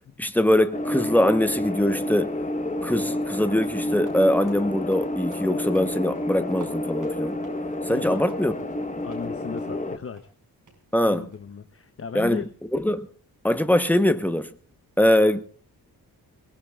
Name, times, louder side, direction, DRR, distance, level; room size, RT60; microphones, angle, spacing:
voice 1, 0.2-2.4 2.8-7.4 7.9-8.5 10.9-11.3 12.1-12.4 12.7-13.1 13.4-14.5 15.0-15.4, left 1 dB, 5° left, 1.0 m, -22 dB
sound 1, 0.7-10.0, left 1 dB, 20° left, 1.1 m, -29 dB
sound 2, 3.3-9.3 9.6-9.8 10.1-10.3 10.7-10.8 11.3-11.6, right 4 dB, 55° right, 5.7 m, -52 dB
voice 2, 7.9-8.2 9.0-10.3 11.0-12.5, left 5 dB, 35° left, 0.9 m, -36 dB
22.5 x 20.0 x 2.4 m
wide cardioid pair, 160°, 38 cm